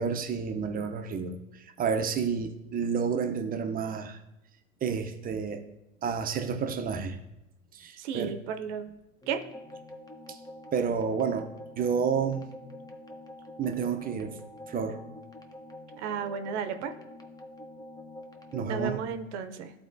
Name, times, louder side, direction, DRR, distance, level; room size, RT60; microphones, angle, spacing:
voice 1, 0.0-4.2 4.8-5.6 6.0-7.2 7.7-8.3 10.3-10.4 10.7-11.5 11.8-12.5 13.6-14.3 14.7-15.0 18.5-19.0, right 6 dB, 20° right, 6 dB, 0.7 m, -30 dB
voice 2, 8.0-8.9 9.3-9.4 16.0-16.9 18.6-19.7, right 7 dB, 60° right, 8 dB, 0.8 m, -33 dB
sound 1, 9.2-19.0, left 1 dB, 10° left, 0.7 m, -46 dB
12.5 x 4.2 x 2.7 m, 0.93 s
hypercardioid pair, 100°, 39 cm